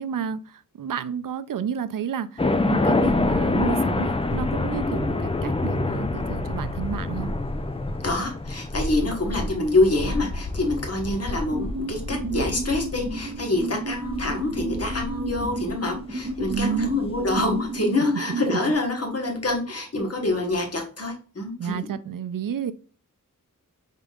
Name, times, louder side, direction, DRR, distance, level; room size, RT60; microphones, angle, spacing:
voice 1, 0.0-7.3 16.5-17.0 21.6-22.7, right 7 dB, 75° right, 0.5 m, -30 dB
sound 1, 2.4-17.5, left 2 dB, 20° left, 0.4 m, -27 dB
voice 2, 8.0-21.8, left 2 dB, 45° left, 1.3 m, -26 dB
sound 2, 11.5-18.7, right 2 dB, 30° right, 0.9 m, -32 dB
5.1 x 3.7 x 2.4 m
wide cardioid pair, 80°, 33 cm